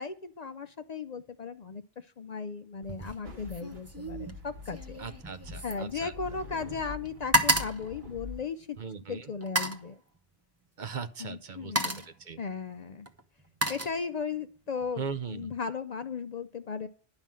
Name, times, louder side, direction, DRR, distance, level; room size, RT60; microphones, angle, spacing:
voice 1, 0.0-5.0 5.6-8.8 9.1-10.0 11.2-12.1 12.4-13.1 13.7-15.0 15.3-16.9, left 5 dB, 50° left, 9 dB, 0.6 m, -36 dB
sound 1, 2.8-3.2 3.5-6.6 6.9-8.8 9.4-9.9 10.9-11.1 11.5-12.2 13.1-14.4 14.8-15.2, right 1 dB, 15° right, 0.9 m, -32 dB
sound 2, 3.2-8.4, left 3 dB, 70° right, 1.9 m, -45 dB
voice 2, 5.0-6.1 8.8-9.3 10.8-12.4 15.0-15.5, right 6 dB, 50° right, 10 dB, 0.8 m, -39 dB
11.0 x 5.5 x 7.5 m, 0.41 s
omnidirectional pair, 1.1 m